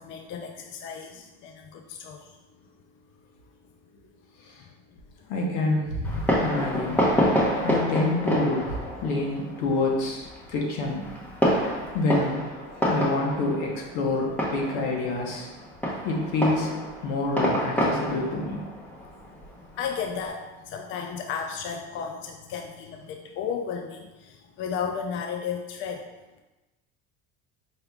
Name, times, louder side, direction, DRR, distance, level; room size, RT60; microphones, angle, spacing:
voice 1, 0.0-2.4 4.6-4.7 19.7-26.1, left 6 dB, 40° left, 3 dB, 0.4 m, -34 dB
voice 2, 5.3-7.0 7.6-8.7 9.0-11.0 11.9-15.5 16.0-16.7 17.0-18.6, left 2 dB, 75° left, -1 dB, 1.1 m, -27 dB
Fireworks, 6.0-20.2, equal, 5° left, 0.9 m, -28 dB
4.7 x 3.3 x 2.3 m, 1.1 s
supercardioid pair, 105°, 30 cm